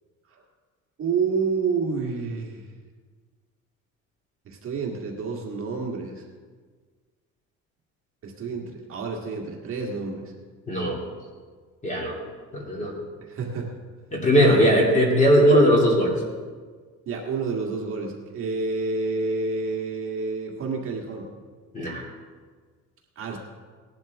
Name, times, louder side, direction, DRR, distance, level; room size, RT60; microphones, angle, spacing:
voice 1, 1.0-2.6 4.4-6.2 8.2-10.3 13.2-13.7 14.4-14.8 17.0-21.3 23.1-23.4, right 4 dB, 40° right, 0 dB, 1.8 m, -29 dB
voice 2, 10.7-11.0 11.8-12.2 12.5-13.0 14.1-16.1 21.7-22.0, equal, 20° left, -1 dB, 2.5 m, -19 dB
18.5 x 12.0 x 3.5 m, 1.5 s
cardioid pair, 170°, 32 cm